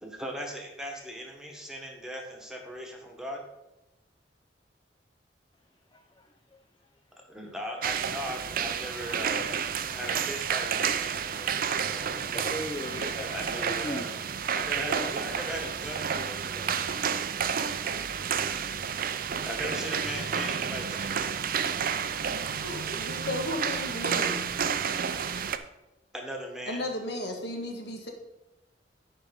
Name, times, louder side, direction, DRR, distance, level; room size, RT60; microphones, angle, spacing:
voice 1, 0.0-3.4 7.3-9.6 9.9-12.2 13.1-14.2 14.5-17.1 19.4-21.3 26.1-26.8, equal, 5° right, 1 dB, 1.5 m, -39 dB
voice 2, 5.9-6.3 9.9-10.3 12.3-13.3 13.6-14.1 14.7-15.1, left 1 dB, 25° left, 5 dB, 0.6 m, -38 dB
sound 1, 7.8-25.6, right 7 dB, 50° right, 0.5 m, -30 dB
voice 3, 22.6-24.5 26.7-28.1, left 1 dB, 65° left, 3 dB, 1.6 m, -34 dB
10.0 x 5.4 x 5.3 m, 0.95 s
head